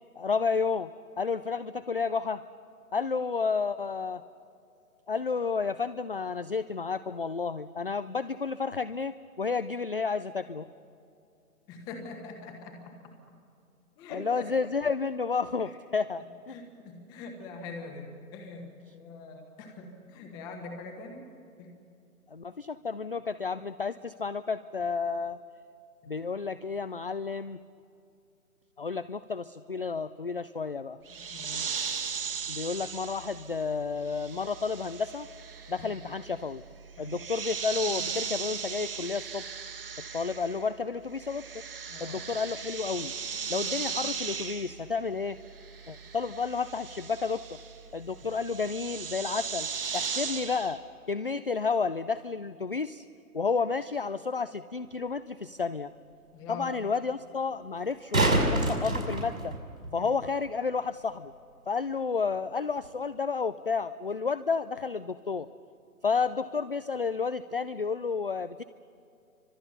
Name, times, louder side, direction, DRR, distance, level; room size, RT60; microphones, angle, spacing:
voice 1, 0.2-0.9 1.2-2.4 2.9-4.2 5.1-10.7 14.1-16.5 22.3-25.4 26.1-27.6 28.8-31.0 32.5-35.3 35.7-36.6 37.0-39.4 40.1-41.4 42.0-43.1 43.5-45.4 45.9-47.6 47.9-49.7 49.9-50.8 51.1-53.1 53.3-55.9 56.5-59.5 59.9-61.3 61.7-65.5 66.0-68.6, left 5 dB, 40° left, 14 dB, 0.5 m, -31 dB
voice 2, 11.7-13.1 14.0-14.4 15.6-15.7 16.5-21.3 21.6-21.8 26.0-26.2 31.1-31.8 35.8-35.9 37.0-37.1 41.9-42.2 56.3-56.7 59.8-60.1, left 3 dB, 10° left, 5 dB, 1.3 m, -43 dB
sound 1, 31.1-40.8 41.0-50.8, right 6 dB, 40° right, 1.7 m, -37 dB
sound 2, 54.9-55.0 57.8-59.9 62.8-62.9, right 1 dB, 75° right, 5.7 m, -26 dB
29.5 x 25.0 x 5.6 m, 2.5 s
figure-of-eight pair, 145°, 44 cm